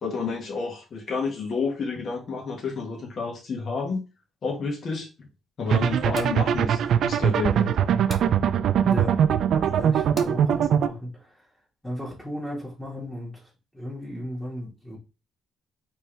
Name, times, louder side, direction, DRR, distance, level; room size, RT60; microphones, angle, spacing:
voice 1, 0.0-4.0 4.4-5.1 5.6-7.9 9.5-9.7, left 4 dB, 55° left, 0 dB, 1.6 m, -30 dB
sound 1, 5.7-10.9, right 8 dB, 70° right, 0.4 m, -22 dB
sound 2, 6.1-6.4 8.1-8.4 10.2-10.4, left 2 dB, 35° left, 1.0 m, -41 dB
voice 2, 8.8-9.2 9.7-11.5 11.8-15.0, left 1 dB, 5° left, -6 dB, 1.7 m, -35 dB
4.4 x 3.3 x 3.3 m, 0.30 s
cardioid pair, 90°, 0 cm